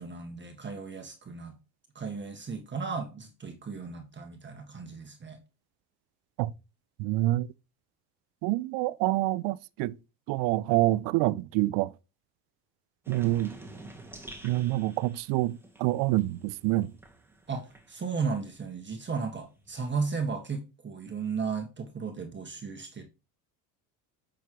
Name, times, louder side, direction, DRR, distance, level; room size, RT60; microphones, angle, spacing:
voice 1, 0.0-1.5 1.9-5.4 17.5-23.1, right 5 dB, 25° right, 1.6 m, -35 dB
voice 2, 7.0-7.5 8.4-9.9 10.3-11.9 13.1-13.5 14.4-16.9, right 17 dB, 70° right, 0.6 m, -27 dB
sound 1, 13.0-18.4 18.7-20.4, right 2 dB, 5° right, 2.0 m, -49 dB
8.4 x 6.3 x 3.0 m
supercardioid pair, 105°, 43 cm